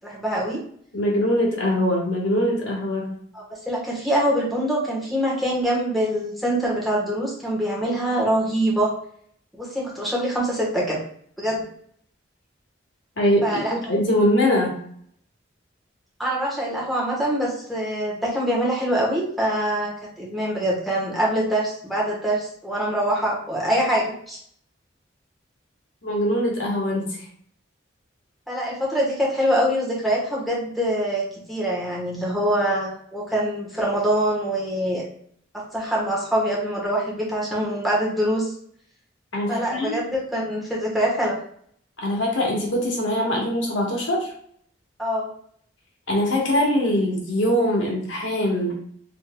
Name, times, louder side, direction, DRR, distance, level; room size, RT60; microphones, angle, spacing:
voice 1, 0.0-0.6 3.3-8.9 9.6-11.0 11.4-11.7 13.4-13.7 16.2-24.4 28.5-35.0 35.5-38.5 39.5-41.4 45.0-45.3, equal, ahead, -5 dB, 1.1 m, -24 dB
voice 2, 0.9-3.2 13.2-14.8 26.0-27.3 39.3-39.9 42.0-44.3 46.1-48.8, equal, 90° left, -2 dB, 1.2 m, -22 dB
4.2 x 3.6 x 2.2 m, 0.63 s
head